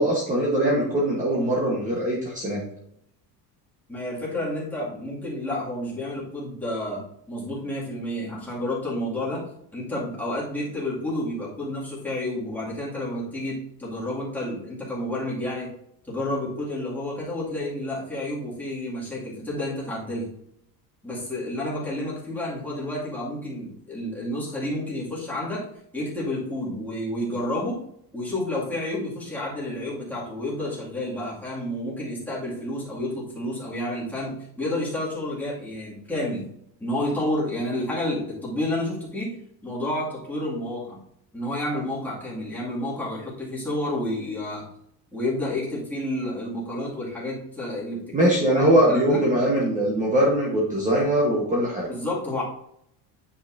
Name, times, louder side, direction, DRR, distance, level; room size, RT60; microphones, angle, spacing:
voice 1, 0.0-2.6 48.1-51.9, right 1 dB, 20° right, -4 dB, 1.2 m, -21 dB
voice 2, 3.9-15.7 16.0-20.3 21.0-25.7 25.9-27.8 28.1-36.5 36.8-39.4 39.6-41.0 41.3-44.7 45.1-49.2 51.9-52.4, left 1 dB, 5° left, -8 dB, 2.3 m, -30 dB
9.4 x 5.5 x 2.7 m, 0.74 s
cardioid pair, 170°, 42 cm